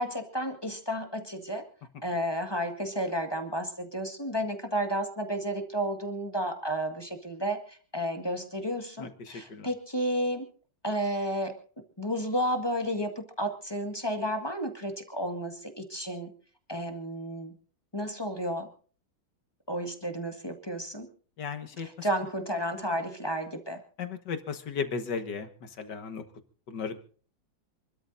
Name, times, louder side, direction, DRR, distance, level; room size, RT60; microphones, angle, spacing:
voice 1, 0.0-1.6 2.0-10.5 10.8-11.5 12.0-16.3 16.7-17.5 17.9-18.7 19.7-21.1 21.8-23.8, equal, 15° left, 5 dB, 1.6 m, -32 dB
voice 2, 9.0-9.7 21.4-22.1 24.0-26.2 26.7-27.1, left 5 dB, 60° left, 8 dB, 2.0 m, -36 dB
28.0 x 13.0 x 2.6 m, 0.43 s
omnidirectional pair, 2.2 m